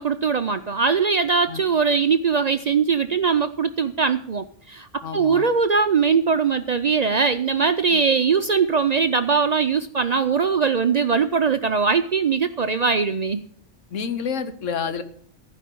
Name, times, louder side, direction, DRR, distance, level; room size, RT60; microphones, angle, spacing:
voice 1, 0.0-13.4, right 5 dB, 55° right, 10 dB, 0.4 m, -21 dB
voice 2, 5.0-5.5 7.9-8.0 13.9-15.0, left 6 dB, 90° left, 10 dB, 1.4 m, -29 dB
15.0 x 5.1 x 8.5 m, 0.63 s
omnidirectional pair, 1.3 m